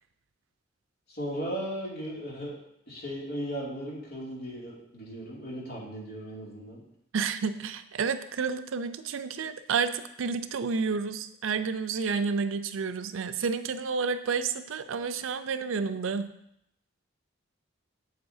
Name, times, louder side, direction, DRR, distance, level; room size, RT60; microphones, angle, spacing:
voice 1, 1.1-2.6 2.9-6.8, equal, 55° left, -5 dB, 2.6 m, -36 dB
voice 2, 7.1-16.3, right 5 dB, 85° right, 11 dB, 0.5 m, -30 dB
7.9 x 7.7 x 2.7 m, 0.76 s
head